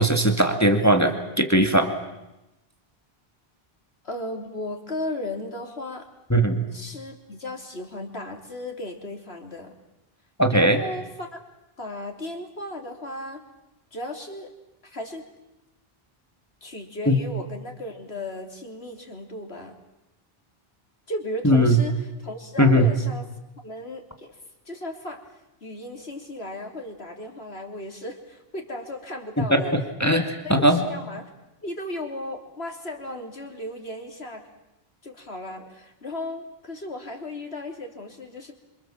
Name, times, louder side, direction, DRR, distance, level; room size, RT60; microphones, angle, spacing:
voice 1, 0.0-1.9 6.3-6.6 10.4-10.8 17.1-17.2 21.4-21.8 22.6-22.9 29.4-30.8, right 1 dB, 15° left, 5 dB, 2.0 m, -19 dB
voice 2, 4.0-6.1 6.7-9.7 10.5-11.4 11.8-13.4 13.9-14.5 14.8-15.2 16.6-19.8 21.1-23.3 23.6-24.4 24.7-29.7 30.0-31.3 31.6-34.5 35.0-38.5, left 1 dB, 80° left, 3 dB, 3.6 m, -35 dB
27.0 x 26.5 x 7.4 m, 0.96 s
omnidirectional pair, 1.0 m